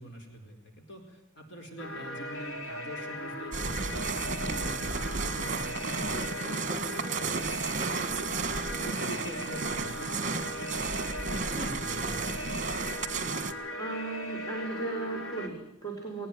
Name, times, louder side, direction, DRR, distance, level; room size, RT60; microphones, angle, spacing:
voice 1, 0.0-12.4, equal, 60° left, 4 dB, 4.6 m, -45 dB
sound 1, 1.8-15.5, left 1 dB, 80° left, 3.0 m, -38 dB
sound 2, 3.5-13.5, right 4 dB, 40° right, 1.7 m, -33 dB
voice 2, 13.8-16.3, right 3 dB, 20° left, 0 dB, 4.5 m, -36 dB
20.0 x 19.5 x 9.4 m, 0.78 s
head